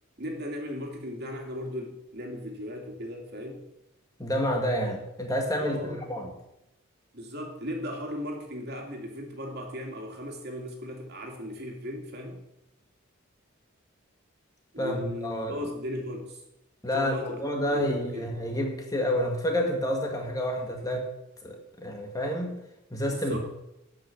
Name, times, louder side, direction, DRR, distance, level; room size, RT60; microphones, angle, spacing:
voice 1, 0.2-3.6 5.6-6.1 7.1-12.4 14.7-16.4 16.9-17.4 17.7-18.3 23.1-23.4, equal, 50° right, 2 dB, 2.5 m, -37 dB
voice 2, 4.2-6.3 14.8-15.6 16.8-21.1 21.4-22.6 22.9-23.4, equal, 15° left, 2 dB, 1.7 m, -29 dB
12.5 x 5.9 x 7.8 m, 0.88 s
head